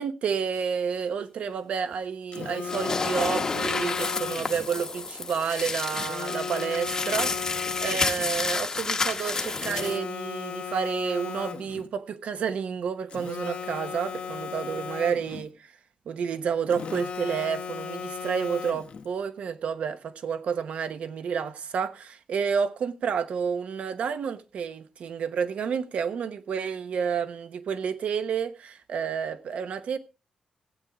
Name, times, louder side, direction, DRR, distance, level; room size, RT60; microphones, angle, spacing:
voice 1, 0.0-15.7 16.1-30.0, right 6 dB, 70° right, 1.1 m, -30 dB
Telephone, 2.3-4.7 5.9-8.3 9.5-11.9 13.1-15.5 16.7-19.1, left 6 dB, 55° left, 0.9 m, -36 dB
sound 1, 2.6-10.0, left 4 dB, 30° left, 1.0 m, -30 dB
16.5 x 8.7 x 3.6 m
wide cardioid pair, 165°, 2 cm